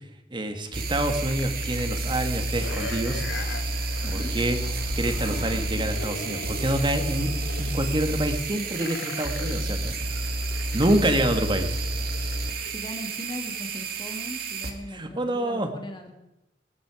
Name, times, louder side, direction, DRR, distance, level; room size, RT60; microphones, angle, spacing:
voice 1, 0.3-3.2 4.1-4.6 5.0-7.3 7.6-10.0 10.7-11.8 14.9-15.7, right 1 dB, 25° right, 6 dB, 1.9 m, -27 dB
sound 1, 0.7-14.7, right 2 dB, 55° right, 2.0 m, -30 dB
sound 2, 1.3-12.8 13.2-13.3, left 3 dB, 85° left, 1.6 m, -40 dB
voice 2, 4.0-4.4 12.6-16.1, left 1 dB, 25° left, 3 dB, 2.2 m, -39 dB
26.0 x 9.9 x 5.0 m, 0.91 s
head